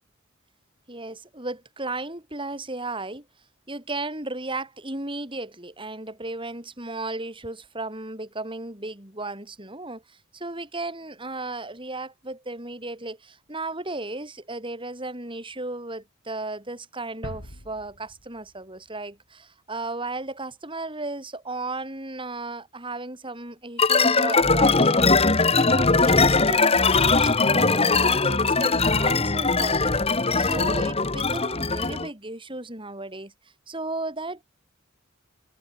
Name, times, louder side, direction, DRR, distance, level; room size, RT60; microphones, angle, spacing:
voice 1, 0.9-3.3 3.7-33.3 33.7-34.4, right 2 dB, 25° right, 7.9 m, -35 dB
sound 1, 17.2-19.1, left 1 dB, 65° left, 5.4 m, -43 dB
sound 2, 23.8-32.1, left 3 dB, 30° left, 1.9 m, -20 dB
head